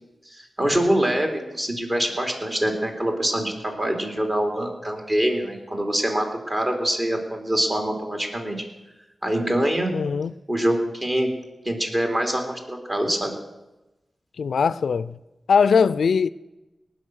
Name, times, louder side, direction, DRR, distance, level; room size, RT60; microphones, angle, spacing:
voice 1, 0.3-8.6 9.2-9.9 10.5-11.3 11.6-13.3, right 1 dB, 40° right, 3.4 m, -24 dB
voice 2, 9.9-10.3 14.4-15.2 15.5-16.3, left 6 dB, 85° left, 0.3 m, -20 dB
18.5 x 6.3 x 6.4 m
cardioid pair, 50°, 0 cm